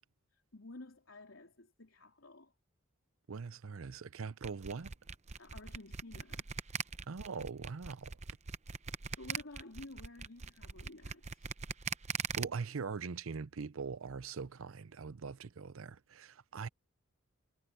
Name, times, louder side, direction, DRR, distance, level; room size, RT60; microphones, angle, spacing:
voice 1, 0.3-2.5 5.4-6.5 9.2-11.5, left 2 dB, 75° left, 3.5 m, -52 dB
voice 2, 3.3-4.9 7.1-8.2 12.4-16.7, right 5 dB, 80° right, 0.6 m, -42 dB
sound 1, 4.4-12.4, right 5 dB, 35° right, 0.7 m, -40 dB
head